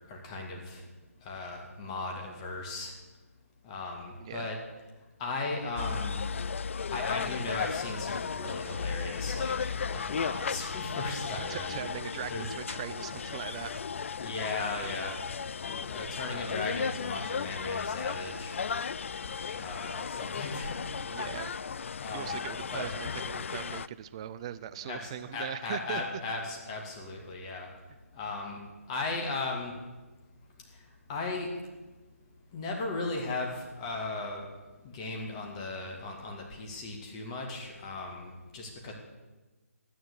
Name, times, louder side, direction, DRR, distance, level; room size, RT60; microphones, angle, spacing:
voice 1, 0.1-0.8 1.3-2.9 3.6-4.6 5.2-6.2 6.9-11.8 12.3-12.5 14.2-15.2 15.7-18.6 19.6-20.9 22.0-22.4 22.7-22.9 24.8-27.7 28.2-28.6 28.9-29.7 31.1-31.5 32.5-34.4 34.8-38.9, left 3 dB, 25° left, 1 dB, 2.3 m, -37 dB
sound 1, 5.8-23.9, left 6 dB, 55° left, 0.4 m, -35 dB
voice 2, 11.5-13.7 21.1-21.5 22.1-26.0, right 10 dB, 20° right, 14 dB, 0.4 m, -40 dB
12.5 x 9.5 x 8.4 m, 1.2 s
hypercardioid pair, 160°, 8 cm